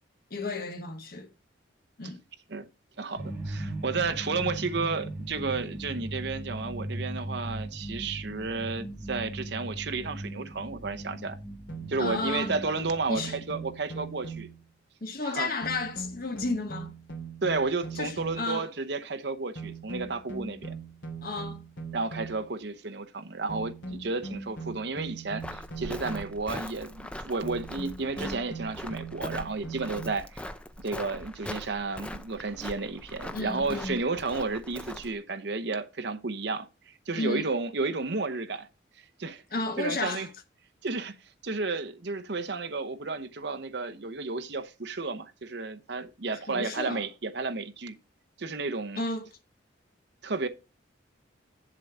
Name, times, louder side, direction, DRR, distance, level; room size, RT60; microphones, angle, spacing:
voice 1, 0.3-1.3 2.0-2.2 12.0-12.5 13.1-13.4 15.0-16.9 17.9-18.7 21.2-21.6 33.3-34.0 37.1-37.5 39.5-40.3 46.5-47.1 49.0-49.3, left 3 dB, 50° left, 1.2 m, -32 dB
voice 2, 3.0-11.4 11.9-14.5 15.2-15.5 17.4-20.7 21.9-30.5 30.8-36.7 37.1-38.7 39.2-39.4 39.8-40.3 40.8-41.1 41.4-47.9 48.4-49.0 50.2-50.5, right 3 dB, 60° right, 0.8 m, -32 dB
sound 1, 3.2-13.3, right 1 dB, 10° right, 2.1 m, -38 dB
sound 2, 11.7-14.7 15.6-18.6 19.6-22.6 23.5-26.5 27.4-30.1, right 4 dB, 70° left, 2.6 m, -40 dB
Walk footsteps, 25.4-35.2, left 1 dB, 5° left, 0.4 m, -41 dB
7.6 x 6.7 x 4.8 m
head